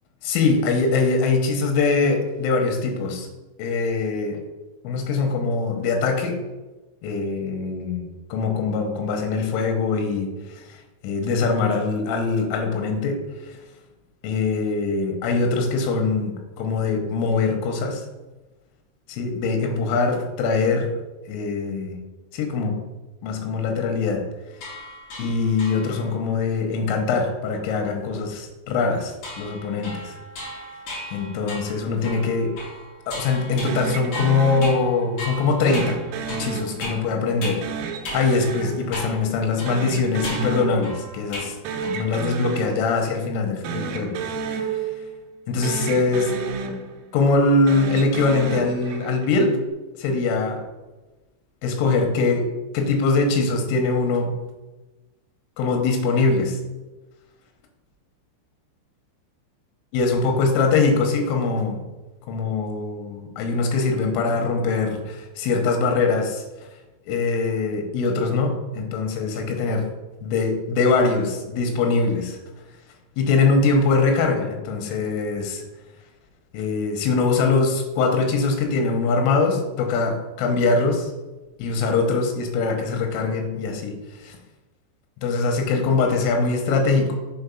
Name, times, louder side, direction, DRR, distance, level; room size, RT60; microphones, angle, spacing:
voice 1, 0.2-3.3 3.6-4.4 4.9-6.4 7.0-10.3 10.6-10.8 11.0-13.2 13.4-13.6 14.2-18.0 19.1-20.9 21.3-22.0 22.3-22.8 23.2-24.2 25.2-30.2 31.1-32.5 33.1-36.0 36.3-37.6 38.1-41.6 41.8-44.1 44.6-44.7 45.5-46.3 47.1-49.6 50.0-50.6 51.6-52.5 52.7-54.4 55.6-56.6 59.9-61.8 62.3-66.4 67.1-69.9 70.2-72.4 73.2-75.6 76.5-81.1 81.6-83.9 84.2-84.4 85.2-87.2, left 4 dB, 90° left, 3 dB, 3.6 m, -22 dB
sound 1, 24.5-26.1 29.2-37.7 38.0-38.2 38.9-39.3 39.6-41.6 41.8-42.2, left 1 dB, 50° left, 2.2 m, -36 dB
sound 2, 33.7-35.2 35.7-37.2 37.6-39.4 39.7-41.2 41.5-43.2 43.6-45.4 45.6-47.2 47.6-49.3, right 5 dB, 80° right, 3.1 m, -31 dB
7.1 x 4.3 x 5.3 m, 1.1 s
omnidirectional pair, 5.8 m